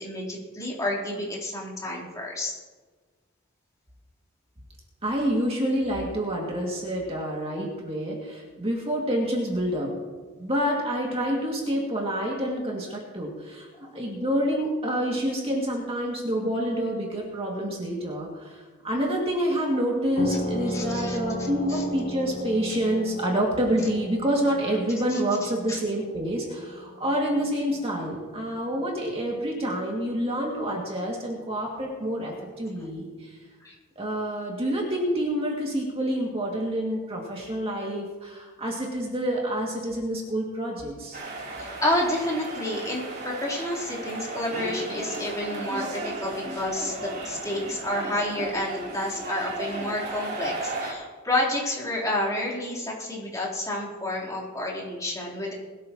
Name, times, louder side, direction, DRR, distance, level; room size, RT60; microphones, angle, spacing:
voice 1, 0.0-2.5 13.7-13.9 20.7-21.2 21.7-21.8 25.1-25.2 25.7-25.8 33.6-33.7 41.6-55.5, left 1 dB, 15° left, -5 dB, 3.7 m, -30 dB
voice 2, 5.0-10.0 10.4-33.4 34.0-41.2, equal, 30° right, -2 dB, 2.3 m, -28 dB
sound 1, 20.2-29.4, left 1 dB, 85° left, 3.2 m, -36 dB
sound 2, 41.1-50.9, right 2 dB, 50° right, 3.5 m, -35 dB
21.5 x 13.5 x 3.1 m, 1.4 s
head